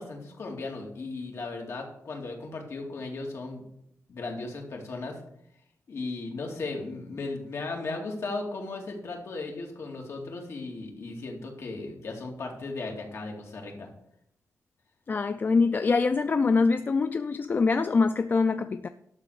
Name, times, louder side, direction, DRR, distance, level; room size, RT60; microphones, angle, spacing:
voice 1, 0.0-3.6 4.1-5.2 5.9-13.9, left 3 dB, 60° left, 2.5 m, -36 dB
voice 2, 15.1-18.9, left 4 dB, 35° left, 0.4 m, -24 dB
12.0 x 4.1 x 8.2 m
wide cardioid pair, 140°, 5 cm